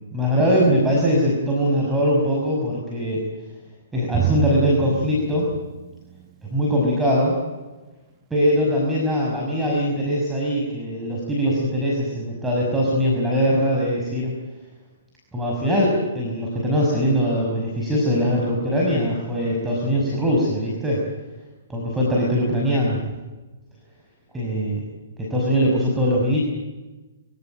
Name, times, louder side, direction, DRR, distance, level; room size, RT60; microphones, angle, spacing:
voice 1, 0.1-3.2 3.9-5.5 6.4-7.4 8.3-14.3 15.3-21.0 21.7-23.0 24.3-24.8 25.2-26.4, equal, 10° right, -3 dB, 6.0 m, -21 dB
Drum, 4.1-6.5, right 12 dB, 25° right, 1.9 m, -28 dB
25.5 x 17.0 x 9.0 m, 1.2 s
hypercardioid pair, 130°, 0 cm